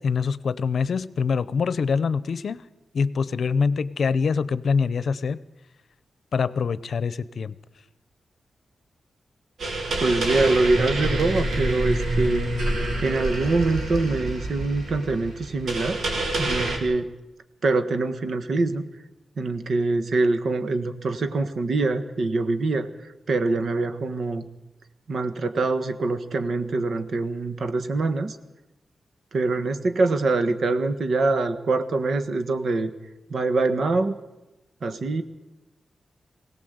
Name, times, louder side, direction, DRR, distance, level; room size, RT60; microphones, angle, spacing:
voice 1, 0.0-2.6 2.9-5.4 6.3-7.6, left 5 dB, 65° left, 16 dB, 0.7 m, -24 dB
sound 1, 9.6-16.8, right 1 dB, 80° right, 3.8 m, -27 dB
voice 2, 10.0-12.5 13.0-16.0 16.4-17.1 17.6-18.9 19.4-24.5 25.1-28.4 29.3-32.9 33.3-34.1 34.8-35.2, right 3 dB, 65° right, 9 dB, 1.5 m, -24 dB
21.0 x 17.5 x 8.1 m, 0.99 s
wide cardioid pair, 115°, 0 cm